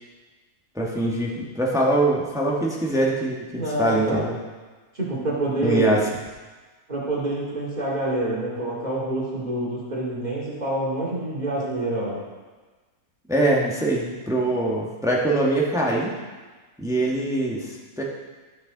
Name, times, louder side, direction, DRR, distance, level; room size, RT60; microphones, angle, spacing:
voice 1, 0.7-4.4 5.6-6.1 13.3-16.1 16.8-18.0, right 1 dB, ahead, -3 dB, 1.1 m, -23 dB
voice 2, 3.6-4.2 4.9-6.0 6.9-12.2, right 2 dB, 30° right, -6 dB, 2.5 m, -27 dB
13.0 x 5.9 x 3.9 m, 1.3 s
omnidirectional pair, 1.7 m